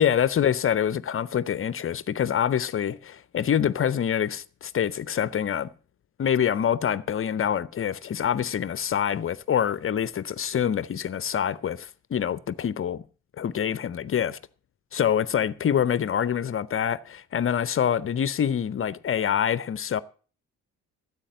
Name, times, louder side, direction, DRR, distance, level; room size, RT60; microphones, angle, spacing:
voice 1, 0.0-5.7 6.2-13.0 13.4-14.4 14.9-20.0, left 9 dB, 30° left, 0.6 m, -26 dB
14.0 x 8.3 x 6.2 m
figure-of-eight pair, 45°, 45 cm